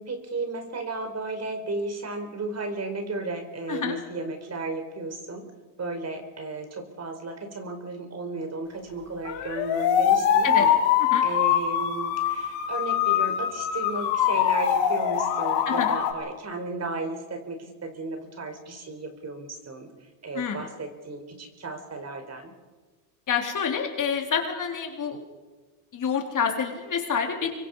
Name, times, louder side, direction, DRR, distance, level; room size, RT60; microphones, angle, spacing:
voice 1, 0.0-5.5 5.8-10.8 11.2-22.5, right 3 dB, 30° right, 7 dB, 4.7 m, -34 dB
sound 1, 9.2-16.1, left 9 dB, 65° left, 5.1 m, -23 dB
voice 2, 15.7-16.0 20.3-20.6 23.3-25.2 25.9-27.5, left 6 dB, 35° left, 3 dB, 3.8 m, -27 dB
25.5 x 23.0 x 5.6 m, 1.3 s
supercardioid pair, 90°, 50 cm